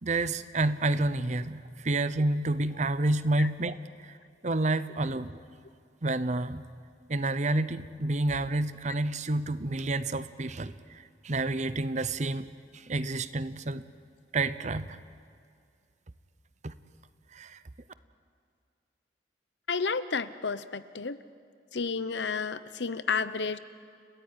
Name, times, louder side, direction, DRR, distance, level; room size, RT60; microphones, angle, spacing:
voice 1, 0.0-4.2 4.4-5.4 6.0-6.6 7.1-13.9 14.3-15.0 16.6-16.7 17.3-17.6, right 2 dB, 40° right, 14 dB, 0.8 m, -29 dB
voice 2, 19.7-21.2 21.7-23.6, left 5 dB, 75° left, 14 dB, 0.9 m, -31 dB
30.0 x 15.5 x 9.9 m, 2.3 s
head